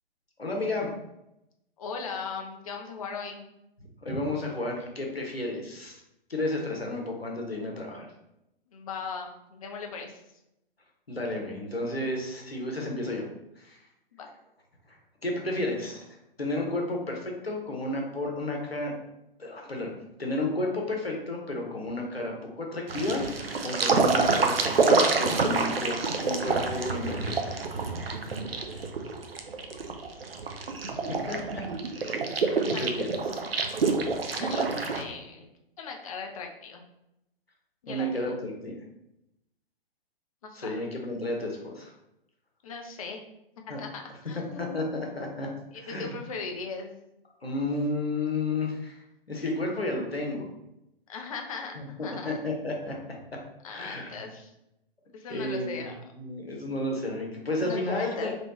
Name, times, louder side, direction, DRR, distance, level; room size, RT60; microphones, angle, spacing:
voice 1, 0.4-0.9 4.0-5.9 6.3-8.1 11.1-13.3 13.6-13.8 14.9-15.0 15.2-16.1 16.4-18.9 19.4-19.9 20.2-23.3 23.6-25.9 26.2-27.3 31.3-31.6 32.0-32.3 32.6-33.4 37.9-38.7 40.6-41.9 43.7-43.8 44.6-45.5 45.8-46.1 47.4-49.0 49.3-50.5 51.8-51.9 52.2-53.0 53.3-53.4 53.7-54.3 55.3-55.9 56.2-58.3, left 2 dB, 85° left, 0 dB, 1.0 m, -32 dB
voice 2, 1.8-3.5 8.7-10.2 14.1-14.3 32.7-32.8 34.3-35.5 35.8-36.8 37.8-38.3 40.4-40.9 42.6-43.2 43.8-44.9 45.4-46.9 51.1-52.3 53.6-54.5 55.1-56.0 57.6-58.4, left 5 dB, 35° left, 2 dB, 0.6 m, -38 dB
sound 1, 22.9-35.0, right 4 dB, 75° right, 0.6 m, -27 dB
3.1 x 3.1 x 2.9 m, 0.86 s
figure-of-eight pair, 120°, 30 cm